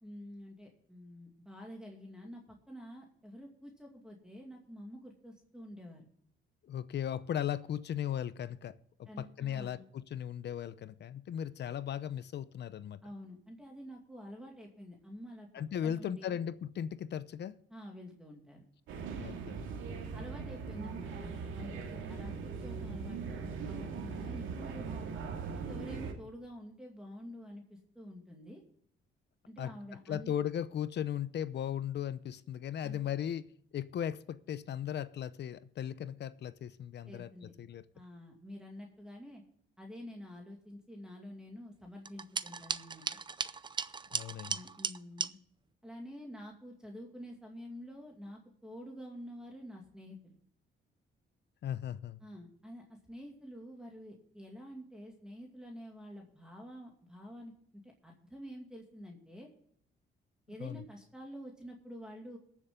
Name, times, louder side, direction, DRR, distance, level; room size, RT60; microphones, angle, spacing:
voice 1, 0.0-6.1 9.1-9.8 13.0-15.5 15.8-16.4 17.7-18.6 20.1-25.0 25.5-28.6 29.5-30.3 32.8-33.0 37.1-37.5 37.9-39.4 39.8-43.1 44.5-45.4 45.8-50.4 52.2-57.5 57.8-59.5 60.5-62.4, equal, 5° right, 2.4 m, -48 dB
voice 2, 6.7-8.7 9.0-13.0 15.5-17.6 19.2-19.7 29.6-29.7 30.1-33.5 33.7-37.3 37.6-37.8 44.1-44.6 51.6-52.2 60.6-60.8, left 9 dB, 60° left, 0.7 m, -37 dB
sound 1, 18.9-26.1, right 5 dB, 90° right, 2.3 m, -40 dB
sound 2, 42.0-45.3, right 5 dB, 25° right, 0.5 m, -37 dB
21.5 x 7.2 x 3.8 m
cardioid pair, 90°, 20 cm